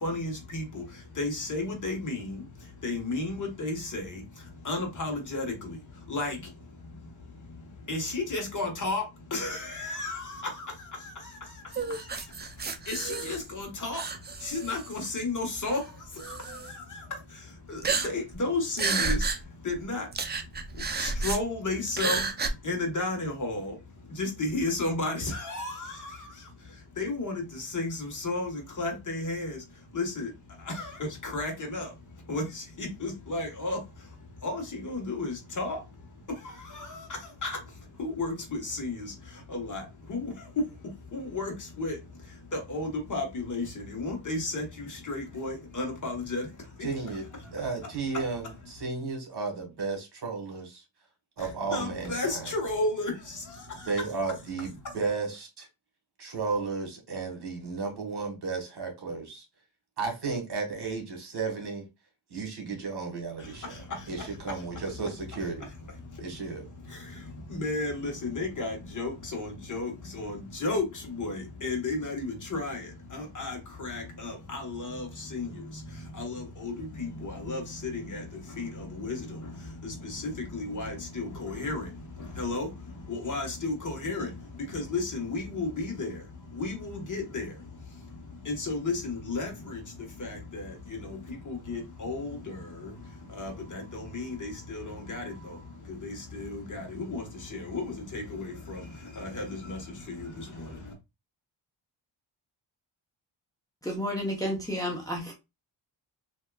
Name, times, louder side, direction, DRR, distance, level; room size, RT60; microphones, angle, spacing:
voice 1, 0.0-0.6 1.2-2.2 2.8-4.0 4.7-5.4 6.1-6.3 7.9-9.0 9.3-10.2 13.3-14.0 14.5-15.8 18.0-19.2 19.7-20.0 21.0-22.2 22.7-23.7 24.2-25.1 25.5-25.7 27.0-27.3 27.7-27.9 28.2-28.5 28.8-29.5 30.0-30.3 31.3-31.8 32.3-32.4 32.8-33.8 34.4-34.5 34.8-35.8 37.4-37.5 38.0-38.3 38.8-39.0 39.5-39.8 40.1-40.2 41.1-41.5 41.8-41.9 42.7-43.6 44.0-44.6 45.1-46.4 51.7-53.1 67.6-69.9 70.2-70.4 70.6-70.8 71.2-71.4 71.6-72.2 72.5-72.8 73.4-73.5 73.8-75.0 75.3-75.5 76.2-76.3 76.6-76.7 77.0-77.1 77.5-77.6 78.6-78.7 79.0-79.1 80.5-81.8 82.4-82.7 83.2-84.3 84.7-86.1 86.6-87.4 88.5-89.5 91.5-92.3 93.4-93.5 94.1-94.8 95.1-95.2 96.4-96.8 97.1-97.2 97.7-97.8 98.1-98.2 99.2-99.4, left 2 dB, 40° left, 1.2 m, -31 dB
sound 1, 11.7-13.6 13.9-15.1 15.7-15.8 16.2-16.7 17.8-18.4 18.7-19.4 19.7-19.8 20.1-21.4 21.9-22.5, right 4 dB, 25° right, 0.4 m, -31 dB
voice 2, 46.8-47.3 47.5-50.8 51.4-52.5 53.8-55.7 56.2-59.4 60.0-61.9 62.3-63.8 64.1-65.7 66.2-66.7, right 4 dB, 55° right, 1.5 m, -33 dB
voice 3, 103.8-105.3, equal, 10° left, 0.8 m, -31 dB
3.4 x 2.8 x 2.2 m
cardioid pair, 100°, 46 cm